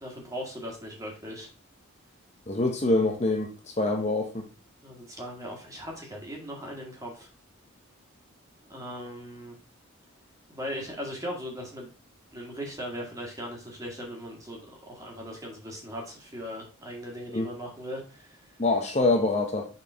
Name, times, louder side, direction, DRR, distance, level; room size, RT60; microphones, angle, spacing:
voice 1, 0.0-1.5 2.9-3.0 4.8-7.3 8.7-9.6 10.5-11.9 12.3-14.6 14.9-18.5 19.0-19.1, equal, 15° right, 1.9 m, -39 dB
voice 2, 2.5-3.5 3.8-4.5 17.3-17.5 18.6-19.7, left 2 dB, 30° left, 0.7 m, -25 dB
6.4 x 4.2 x 4.5 m
head